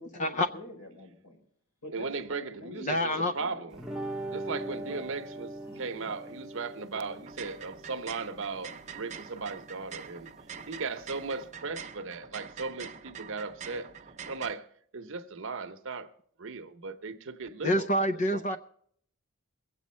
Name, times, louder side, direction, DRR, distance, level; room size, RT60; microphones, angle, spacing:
voice 1, 0.0-1.4 1.8-3.8 4.9-5.1 5.6-6.1, left 1 dB, 85° left, 4.7 m, -47 dB
voice 2, 1.9-3.8 4.3-5.5 5.8-10.3 10.7-13.9 14.3-14.7 14.9-16.1 16.4-17.9 18.3-18.6, right 4 dB, 60° right, 0.8 m, -37 dB
voice 3, 2.8-3.4 17.6-18.6, left 1 dB, 35° left, 0.4 m, -27 dB
sound 1, 3.7-11.4, right 1 dB, 5° right, 0.9 m, -42 dB
sound 2, 7.1-14.5, right 7 dB, 30° right, 0.6 m, -45 dB
22.0 x 8.4 x 4.3 m
head